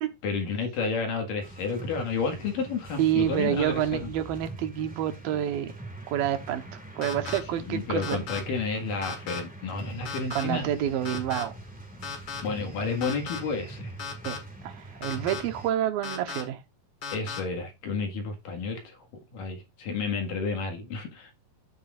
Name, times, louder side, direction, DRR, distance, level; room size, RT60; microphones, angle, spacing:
voice 1, 0.2-4.1 7.6-10.7 12.4-13.9 17.1-19.0 19.3-21.3, left 4 dB, 70° left, 3.3 m, -31 dB
sound 1, 1.4-15.7, right 2 dB, 5° right, 0.7 m, -43 dB
voice 2, 3.0-5.7 6.1-8.2 10.3-11.5 14.2-14.4 14.6-16.6, right 11 dB, 80° right, 2.8 m, -28 dB
sound 2, 7.0-7.4 8.0-8.4 9.0-9.4 10.0-10.4 11.0-11.4 12.0-12.4 13.0-13.4 14.0-14.4 15.0-15.4 16.0-16.4 17.0-17.4, left 6 dB, 40° left, 2.1 m, -35 dB
14.5 x 6.3 x 2.5 m
omnidirectional pair, 4.2 m